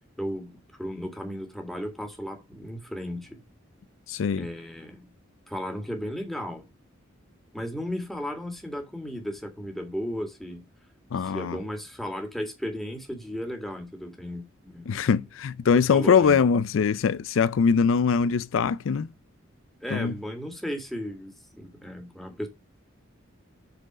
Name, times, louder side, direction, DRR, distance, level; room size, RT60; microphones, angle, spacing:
voice 1, 0.2-3.4 4.3-5.1 5.5-6.7 7.5-10.7 11.2-14.9 15.9-16.4 19.8-22.5, equal, ahead, 2.0 m, -35 dB
voice 2, 4.1-4.5 11.1-11.6 14.9-19.1 19.9-20.1, left 6 dB, 70° left, 0.4 m, -22 dB
7.8 x 4.5 x 6.1 m
head